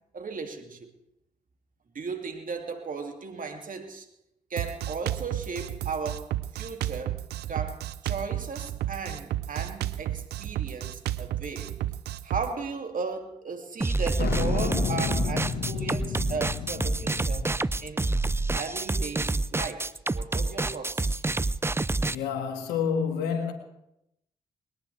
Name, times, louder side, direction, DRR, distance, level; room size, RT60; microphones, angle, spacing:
voice 1, 0.1-0.9 1.9-4.1 4.5-7.2 7.5-11.8 12.2-17.5 17.8-18.1 18.5-21.2, right 4 dB, 55° right, 2.5 m, -36 dB
Drum kit, 4.6-12.5, right 13 dB, 75° right, 0.6 m, -32 dB
sound 1, 13.8-22.2, right 2 dB, 15° right, 0.5 m, -27 dB
sound 2, 14.2-18.9, left 6 dB, 70° left, 1.5 m, -32 dB
voice 2, 22.1-23.5, left 6 dB, 85° left, 1.8 m, -28 dB
21.5 x 18.5 x 3.4 m
hypercardioid pair, 40°, 17 cm